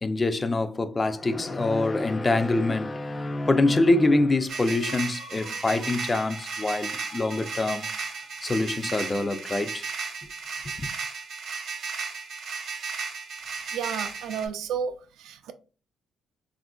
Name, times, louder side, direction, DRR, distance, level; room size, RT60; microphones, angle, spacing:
voice 1, 0.0-7.9 8.4-9.9 10.8-10.9, left 2 dB, 25° left, 0.3 m, -25 dB
sound 1, 4.4-8.5, left 3 dB, 60° left, 0.7 m, -47 dB
sound 2, 4.5-14.5, right 5 dB, 60° right, 0.7 m, -35 dB
voice 2, 13.7-15.5, right 7 dB, 85° right, 0.4 m, -32 dB
3.5 x 2.4 x 2.2 m
cardioid pair, 90°, 0 cm